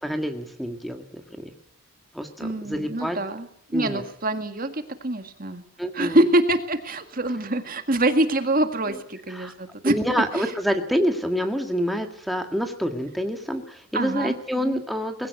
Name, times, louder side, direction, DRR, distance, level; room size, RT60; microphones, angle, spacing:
voice 1, 0.0-1.5 2.1-3.2 3.7-4.0 5.8-6.2 8.9-9.0 9.3-9.5 9.9-15.3, equal, ahead, 6 dB, 1.7 m, -27 dB
voice 2, 2.4-3.5 3.7-5.6 5.9-9.9 10.3-10.5 13.9-14.4 14.6-14.8, right 1 dB, 40° right, 8 dB, 1.8 m, -25 dB
21.0 x 16.0 x 8.3 m, 0.70 s
head